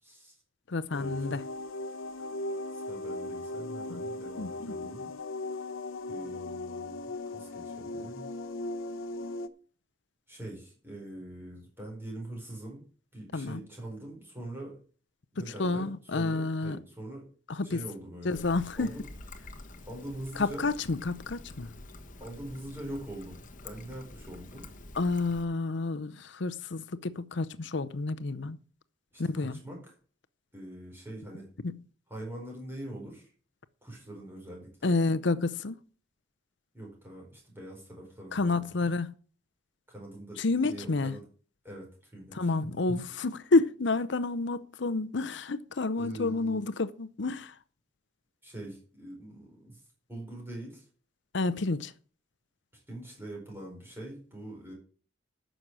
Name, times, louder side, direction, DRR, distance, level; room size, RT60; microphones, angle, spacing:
voice 1, 0.0-0.3 0.9-1.1 2.7-5.1 5.5-5.6 6.1-7.0 7.3-8.3 10.3-12.8 13.1-14.8 15.3-17.3 17.6-18.4 18.8-19.0 19.9-20.7 22.2-24.7 29.1-29.9 30.5-31.5 32.1-33.3 33.8-35.0 36.7-38.9 39.9-41.2 41.6-43.0 46.0-46.6 48.4-49.8 50.1-50.8 52.9-54.7, right 1 dB, 10° right, 4.7 m, -43 dB
voice 2, 0.7-1.4 3.9-4.0 4.4-4.7 13.3-13.6 15.6-16.8 17.5-17.8 18.2-18.9 20.4-21.7 25.0-28.6 29.2-29.6 31.6-31.8 34.8-35.8 38.3-39.1 40.4-41.1 42.3-47.5 51.3-51.9, left 3 dB, 60° left, 0.7 m, -29 dB
sound 1, 0.9-9.5, left 2 dB, 90° left, 0.8 m, -38 dB
Trickle dribble, 18.3-25.5, left 2 dB, 40° left, 1.3 m, -48 dB
10.0 x 6.5 x 7.4 m
head